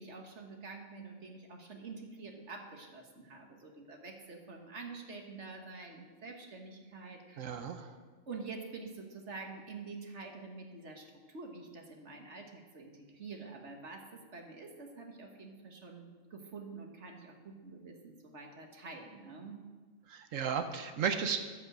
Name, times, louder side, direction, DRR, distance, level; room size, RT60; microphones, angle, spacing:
voice 1, 0.0-7.8 8.3-19.6, right 4 dB, 60° right, 2 dB, 1.7 m, -47 dB
voice 2, 7.4-7.9 20.1-21.4, right 7 dB, 75° right, 8 dB, 1.2 m, -34 dB
13.0 x 5.7 x 7.7 m, 1.4 s
omnidirectional pair, 1.4 m